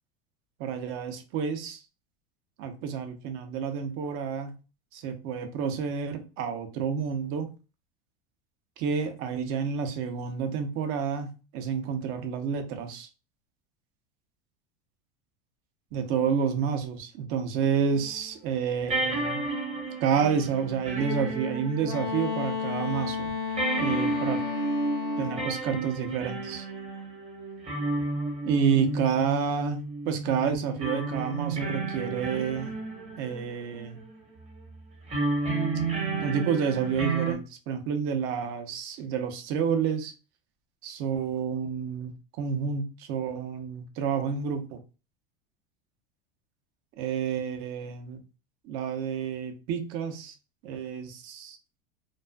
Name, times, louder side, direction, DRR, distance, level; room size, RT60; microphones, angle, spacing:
voice 1, 0.6-1.8 2.6-4.5 4.9-7.5 8.8-13.1 15.9-19.4 20.0-23.3 23.8-24.4 25.2-26.6 28.5-32.7 33.2-34.0 36.2-40.1 40.8-42.1 42.4-44.8 47.0-48.2 48.6-50.3 50.6-51.6, right 6 dB, 50° right, 0.6 m, -29 dB
sound 1, 18.0-18.1 18.9-22.7 23.0-23.1 23.6-34.0 35.1-37.3, right 3 dB, 20° right, 0.9 m, -32 dB
Wind instrument woodwind instrument, 21.8-25.5, left 5 dB, 70° left, 0.6 m, -32 dB
2.4 x 2.3 x 2.2 m
supercardioid pair, 110°, 29 cm